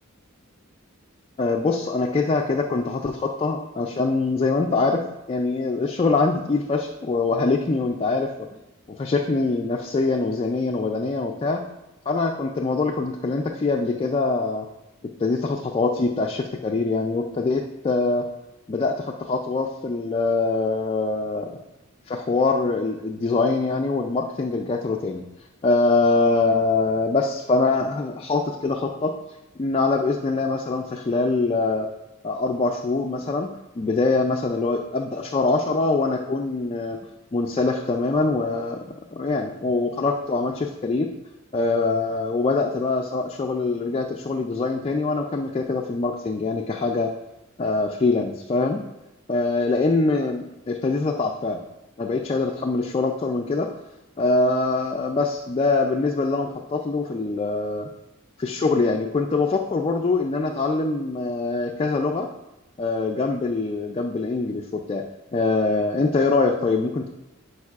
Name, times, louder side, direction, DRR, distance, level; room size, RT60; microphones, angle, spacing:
voice 1, 1.4-8.5 8.9-11.6 12.1-14.7 15.2-18.3 18.7-21.6 22.1-25.2 25.6-29.1 29.6-31.9 32.2-33.5 33.8-37.0 37.3-38.8 39.1-41.1 41.5-47.1 47.6-48.8 49.3-51.6 52.0-53.8 54.2-57.9 58.4-62.3 62.8-65.0 65.3-67.1, left 3 dB, 25° left, 2 dB, 0.3 m, -23 dB
10.5 x 4.7 x 2.4 m, 0.96 s
head